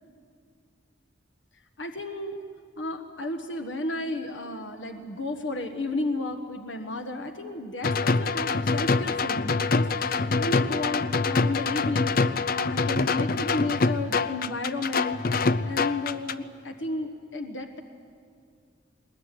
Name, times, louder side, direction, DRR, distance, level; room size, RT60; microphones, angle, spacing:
voice 1, 1.8-2.4 2.8-17.8, left 2 dB, 90° left, 5 dB, 1.4 m, -33 dB
sound 1, 7.8-16.3, left 4 dB, 50° left, 0.6 m, -25 dB
21.0 x 20.0 x 9.9 m, 2.2 s
head